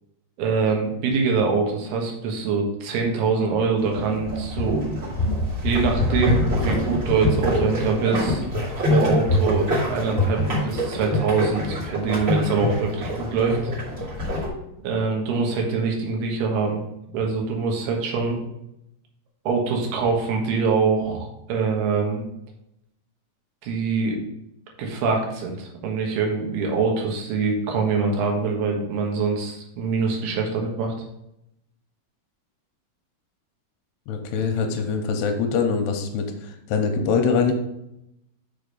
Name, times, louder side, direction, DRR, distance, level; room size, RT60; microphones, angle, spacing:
voice 1, 0.4-4.8 5.6-8.4 8.8-13.7 14.8-16.8 17.1-18.4 19.4-22.2 23.6-24.2 24.8-31.1, right 4 dB, 70° right, 1 dB, 3.2 m, -24 dB
sound 1, 3.8-14.5, left 1 dB, 25° right, 2.2 m, -24 dB
voice 2, 34.1-37.5, left 5 dB, 80° left, 5 dB, 2.8 m, -23 dB
6.6 x 5.1 x 5.4 m, 0.83 s
omnidirectional pair, 4.9 m